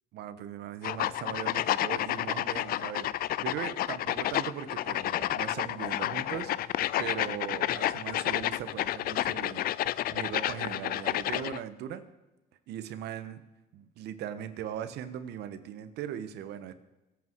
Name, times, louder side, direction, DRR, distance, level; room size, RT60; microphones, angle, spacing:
voice 1, 0.1-12.0 12.7-13.4 13.7-16.7, right 10 dB, 80° right, 11 dB, 1.4 m, -39 dB
sound 1, 0.8-11.6, left 14 dB, 60° left, 0.5 m, -30 dB
23.5 x 8.3 x 4.7 m, 1.0 s
cardioid pair, 110°, 17 cm